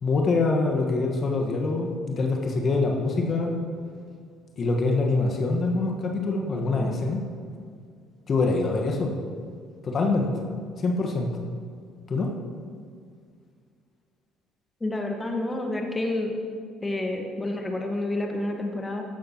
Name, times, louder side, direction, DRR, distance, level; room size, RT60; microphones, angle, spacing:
voice 1, 0.0-3.6 4.6-7.2 8.3-9.1 9.8-10.3 10.8-11.3 12.1-12.3, left 3 dB, 45° left, 2 dB, 1.5 m, -24 dB
voice 2, 14.8-16.6 16.8-19.0, left 2 dB, 20° left, 2 dB, 1.5 m, -29 dB
15.5 x 10.5 x 3.0 m, 2.1 s
hypercardioid pair, 55°, 0 cm